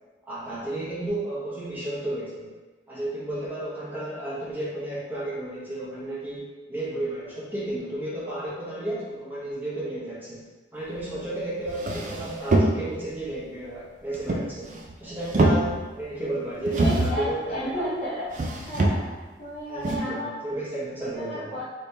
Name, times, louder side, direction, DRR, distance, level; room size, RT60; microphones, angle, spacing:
voice 1, 0.3-2.5 2.9-10.4 10.7-14.7 15.0-17.9 19.7-21.6, right 1 dB, 10° right, -9 dB, 0.9 m, -33 dB
sound 1, 11.2-11.3 11.7-13.1 14.1-14.9 15.2-16.0 16.7-17.3 18.3-19.3 19.8-20.0, right 2 dB, 45° right, 0.4 m, -24 dB
voice 2, 16.7-18.3 18.7-19.1 19.4-20.3 21.2-21.8, equal, 40° left, -10 dB, 0.7 m, -32 dB
3.3 x 2.7 x 3.3 m, 1.2 s
head